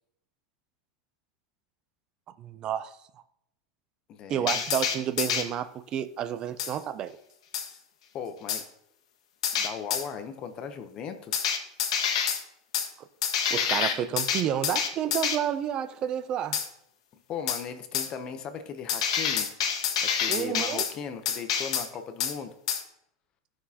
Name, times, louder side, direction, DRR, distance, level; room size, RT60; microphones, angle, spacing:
voice 1, 2.4-2.9 4.3-7.2 13.5-16.6 20.3-20.9, right 10 dB, 25° right, 0.4 m, -30 dB
voice 2, 4.1-4.6 8.1-8.6 9.5-11.4 17.3-19.5 20.0-22.5, left 7 dB, 25° left, 0.6 m, -38 dB
sound 1, 4.5-5.4 6.6-6.7 7.5-7.7 8.5-8.6 9.4-10.0 11.3-12.4 12.7-12.9 13.2-15.4 16.5-16.7 17.5-17.6 17.9-18.1 18.9-20.9 21.3-21.9 22.2-22.3 22.7-22.8, left 8 dB, 90° left, 1.3 m, -27 dB
15.0 x 6.2 x 2.8 m
supercardioid pair, 170°, 3 cm